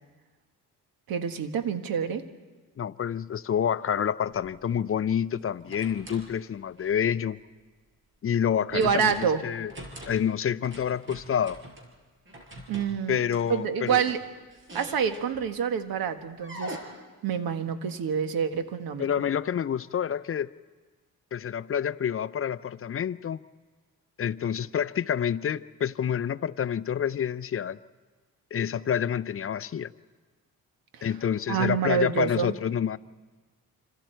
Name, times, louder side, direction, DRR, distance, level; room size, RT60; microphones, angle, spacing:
voice 1, 1.1-2.2 8.7-9.4 12.7-13.2 13.5-14.2 14.7-16.8 17.2-19.0 30.9-31.1 31.5-32.5, right 7 dB, 75° right, 8 dB, 1.6 m, -27 dB
voice 2, 2.8-7.4 8.2-9.7 10.1-11.6 13.1-14.0 19.0-20.5 21.3-23.4 24.2-27.8 28.5-29.9 31.0-33.0, left 8 dB, 40° left, 15 dB, 0.6 m, -28 dB
sound 1, 4.3-4.7 5.4-6.3 6.8-7.0 8.7-9.3 9.6-10.3 10.6-11.9 12.3-15.6 16.4-16.8, right 1 dB, 35° right, 5.0 m, -43 dB
26.5 x 26.5 x 4.6 m, 1.3 s
cardioid pair, 95°, 35 cm